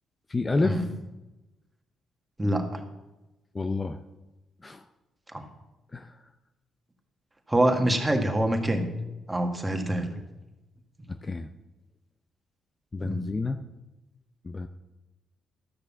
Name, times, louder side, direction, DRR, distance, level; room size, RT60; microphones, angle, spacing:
voice 1, 0.3-0.8 3.5-4.0 4.6-4.8 5.9-6.1 11.1-11.5 12.9-13.6 14.4-14.7, left 3 dB, 25° left, 7 dB, 0.6 m, -29 dB
voice 2, 2.4-2.8 5.3-5.5 7.5-8.9 9.3-10.1 13.0-13.3, right 1 dB, 15° right, 4 dB, 1.8 m, -25 dB
13.0 x 6.7 x 7.1 m, 1.0 s
cardioid pair, 90°, 0 cm